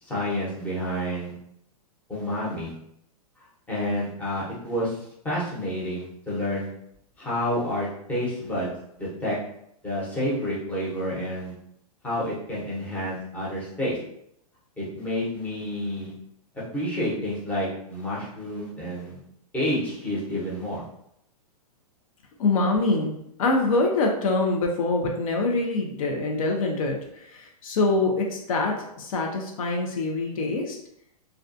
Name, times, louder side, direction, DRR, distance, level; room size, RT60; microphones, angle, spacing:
voice 1, 0.0-1.4 2.1-2.7 3.7-6.7 7.2-8.7 9.0-9.4 9.8-11.5 12.0-14.0 14.8-16.1 16.5-19.2 19.5-20.8, equal, 5° left, -7 dB, 0.8 m, -29 dB
voice 2, 22.4-23.1 23.4-30.8, left 3 dB, 60° left, 1 dB, 0.5 m, -25 dB
2.3 x 2.2 x 2.6 m, 0.75 s
hypercardioid pair, 140°, 20 cm